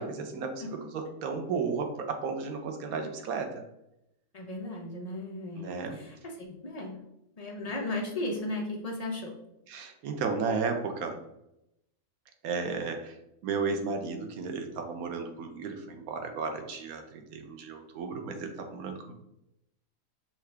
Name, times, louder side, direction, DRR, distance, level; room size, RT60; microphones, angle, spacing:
voice 1, 0.0-3.6 5.6-6.0 9.7-11.2 12.4-13.2 13.4-19.1, right 5 dB, 90° right, 5 dB, 1.2 m, -34 dB
voice 2, 4.3-7.0 7.4-9.3, left 2 dB, 40° left, 0 dB, 0.6 m, -36 dB
5.6 x 2.5 x 3.3 m, 0.85 s
omnidirectional pair, 1.5 m